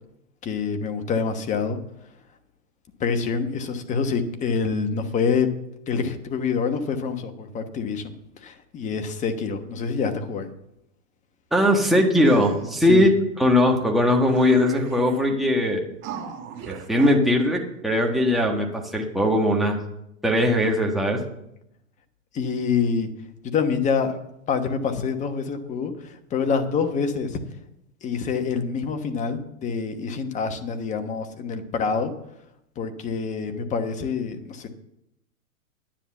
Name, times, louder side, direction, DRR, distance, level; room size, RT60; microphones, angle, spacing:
voice 1, 0.4-1.8 3.0-5.5 5.9-8.1 8.4-10.5 12.9-13.1 22.3-23.1 23.4-24.2 24.5-27.4 28.0-32.1 32.8-34.7, left 5 dB, 15° left, 7 dB, 1.1 m, -26 dB
voice 2, 11.5-13.1 13.4-15.8 16.7-19.8 20.2-21.2, left 1 dB, ahead, 0 dB, 1.3 m, -20 dB
sound 1, 12.2-13.1 13.8-13.9 14.2-15.3 16.0-17.2, right 7 dB, 30° right, 1.4 m, -37 dB
10.0 x 9.5 x 7.0 m, 0.81 s
hypercardioid pair, 140°, 42 cm